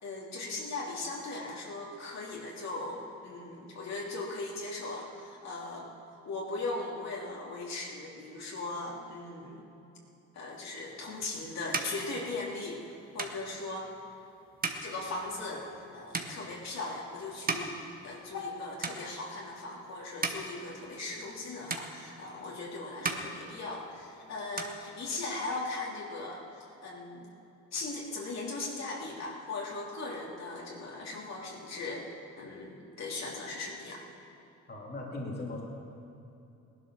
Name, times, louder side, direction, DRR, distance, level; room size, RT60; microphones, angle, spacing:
voice 1, 0.0-5.9 6.2-9.6 10.3-12.8 13.1-13.9 14.8-15.7 15.9-27.3 27.7-32.1 32.4-34.0, left 2 dB, 60° left, -3 dB, 3.1 m, -38 dB
sound 1, 10.9-18.5 18.8-19.5 19.9-21.4 21.7-22.6 22.9-24.1 24.4-25.5, right 3 dB, 30° right, 1.4 m, -38 dB
voice 2, 34.7-35.6, left 2 dB, 35° left, -3 dB, 2.6 m, -38 dB
17.5 x 11.5 x 6.2 m, 2.8 s
cardioid pair, 90°, 30 cm